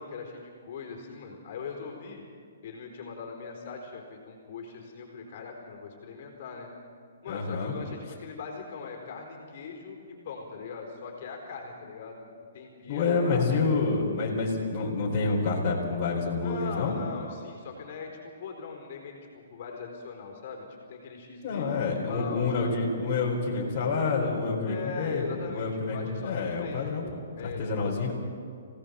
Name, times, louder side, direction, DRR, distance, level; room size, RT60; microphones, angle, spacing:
voice 1, 0.0-2.2 2.6-6.7 7.2-12.2 12.5-13.5 16.4-22.8 24.6-28.1, left 5 dB, 45° left, 1 dB, 4.4 m, -41 dB
voice 2, 7.3-7.8 12.9-17.0 21.4-27.1 27.4-28.1, left 4 dB, 30° left, -5 dB, 4.3 m, -28 dB
26.0 x 17.5 x 7.1 m, 2.4 s
hypercardioid pair, 165°, 0 cm